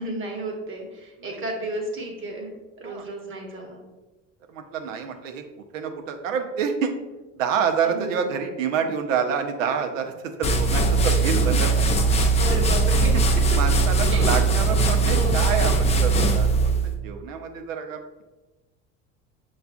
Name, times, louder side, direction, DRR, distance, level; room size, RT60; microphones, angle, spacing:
voice 1, 0.0-3.8 7.8-8.3 12.2-13.1 14.1-14.4 15.0-15.3, right 1 dB, 30° right, 0 dB, 1.0 m, -33 dB
voice 2, 4.5-5.4 5.7-6.9 7.4-11.9 12.5-12.8 13.5-18.0, right 6 dB, 85° right, 6 dB, 0.6 m, -27 dB
sound 1, 10.4-16.9, right 3 dB, 20° left, 0.3 m, -20 dB
5.8 x 2.4 x 2.2 m, 1.1 s
hypercardioid pair, 70°, 38 cm